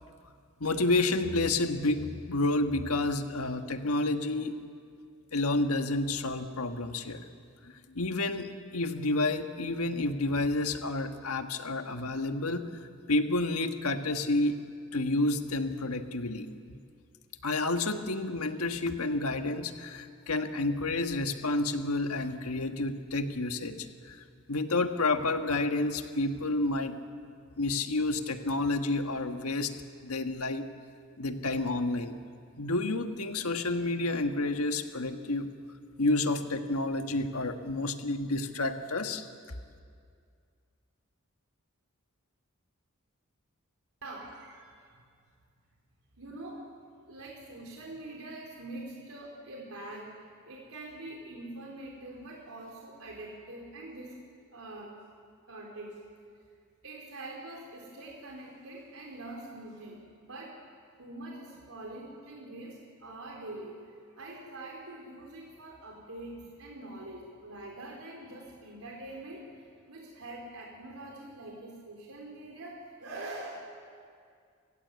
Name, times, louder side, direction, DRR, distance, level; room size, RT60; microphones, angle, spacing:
voice 1, 0.6-4.6 5.3-7.2 7.6-12.7 13.1-14.6 14.9-16.5 17.4-24.2 24.5-27.0 27.6-29.7 30.0-30.7 31.2-32.2 32.6-35.5 36.0-39.2, left 2 dB, 85° left, 6 dB, 1.5 m, -30 dB
voice 2, 44.0-45.0 46.2-46.7 47.1-54.2 54.5-54.9 55.5-56.0 56.8-60.6 61.0-73.6, right 2 dB, 75° right, -1 dB, 4.0 m, -44 dB
29.0 x 16.0 x 8.3 m, 2.2 s
head